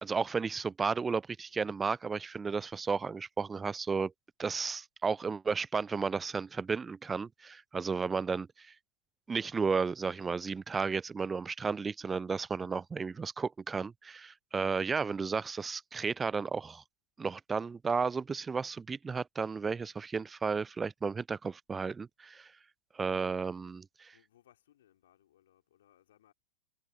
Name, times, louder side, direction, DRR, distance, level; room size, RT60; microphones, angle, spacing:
voice 1, 0.0-4.1 4.4-8.7 9.3-16.8 17.2-22.5 22.9-24.1, right 5 dB, 15° right, 0.5 m, -33 dB
voice 2, 24.1-26.3, left 12 dB, 60° left, 3.3 m, -67 dB
figure-of-eight pair, 90°, 0 cm